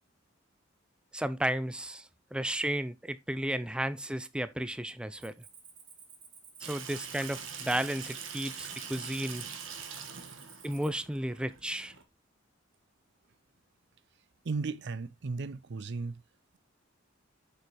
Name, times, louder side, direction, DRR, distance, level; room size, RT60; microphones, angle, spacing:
voice 1, 1.1-5.3 6.6-9.5 10.6-11.9, right 1 dB, 5° right, 0.4 m, -33 dB
Cricket, 5.2-10.9, right 6 dB, 40° right, 2.0 m, -54 dB
Water tap faucet / Sink (filling or washing), 6.6-12.0, right 6 dB, 85° right, 1.5 m, -43 dB
voice 2, 14.4-16.2, right 4 dB, 60° right, 0.5 m, -35 dB
6.8 x 6.4 x 3.3 m
head